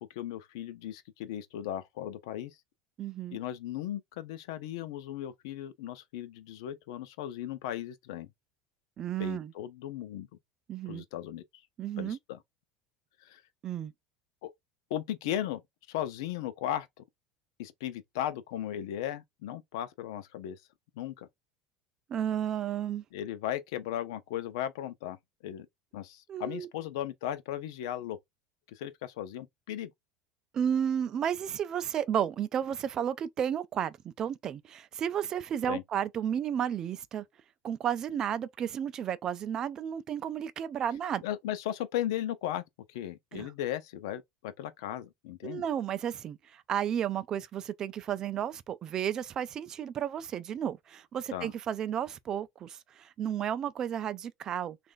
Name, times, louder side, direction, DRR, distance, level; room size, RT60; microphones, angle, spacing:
voice 1, 0.1-2.6 3.3-8.3 9.2-10.3 10.9-11.4 12.0-12.4 13.2-13.4 14.4-14.5 14.9-15.6 15.9-17.0 17.6-20.6 21.0-21.3 23.1-25.2 25.4-25.7 25.9-28.2 28.7-29.9 35.7-35.8 41.2-42.6 42.9-45.6 51.3-51.5, left 11 dB, 85° left, 0.6 m, -36 dB
voice 2, 3.0-3.4 9.0-9.5 10.7-11.0 11.8-12.2 13.6-13.9 22.1-23.0 26.3-26.7 30.5-37.2 37.6-41.2 43.3-43.5 45.4-54.8, right 9 dB, 25° right, 0.3 m, -32 dB
3.1 x 2.5 x 3.8 m
cardioid pair, 165°, 2 cm